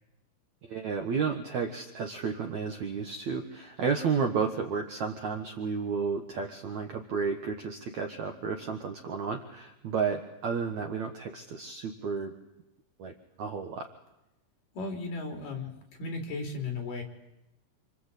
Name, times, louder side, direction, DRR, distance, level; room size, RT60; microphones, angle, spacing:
voice 1, 0.6-12.3 13.0-13.9, right 5 dB, 60° right, 4 dB, 2.2 m, -32 dB
voice 2, 14.7-17.0, left 3 dB, 55° left, 2 dB, 4.8 m, -35 dB
28.0 x 25.5 x 8.4 m, 0.92 s
omnidirectional pair, 4.8 m